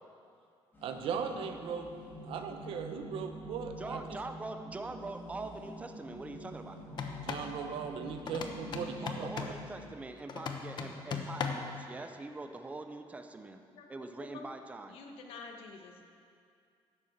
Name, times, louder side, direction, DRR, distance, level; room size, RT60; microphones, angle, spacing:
sound 1, 0.7-10.0, equal, 20° left, 3.0 m, -47 dB
voice 1, 0.8-4.2 7.2-9.3, right 6 dB, 70° right, 6 dB, 1.0 m, -38 dB
voice 2, 3.8-6.8 9.0-13.6 13.9-15.0, right 2 dB, 15° right, 6 dB, 0.6 m, -43 dB
sound 2, 6.9-7.5 8.3-9.6 10.3-11.7, left 6 dB, 50° left, 1.0 m, -38 dB
voice 3, 14.2-14.6 14.9-16.0, left 4 dB, 75° left, 2 dB, 1.5 m, -48 dB
11.0 x 8.0 x 7.3 m, 2.4 s
cardioid pair, 135°, 10 cm